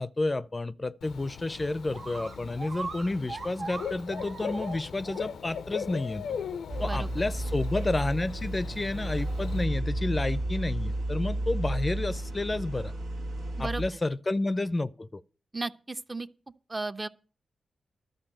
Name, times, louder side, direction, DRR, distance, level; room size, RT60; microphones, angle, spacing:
voice 1, 0.0-6.2 6.8-12.9 13.6-15.2, left 2 dB, 30° left, 0.5 m, -30 dB
Bird / Cricket, 1.0-9.6, left 7 dB, 80° left, 0.5 m, -39 dB
sound 1, 1.6-1.7 1.9-5.2 5.6-5.7 6.4-6.5, right 4 dB, 60° right, 0.6 m, -40 dB
sound 2, 6.7-13.9, right 1 dB, 90° right, 2.1 m, -32 dB
voice 2, 15.5-16.3 16.7-17.1, right 3 dB, 30° right, 0.8 m, -34 dB
12.0 x 5.3 x 8.7 m
supercardioid pair, 45°, 0 cm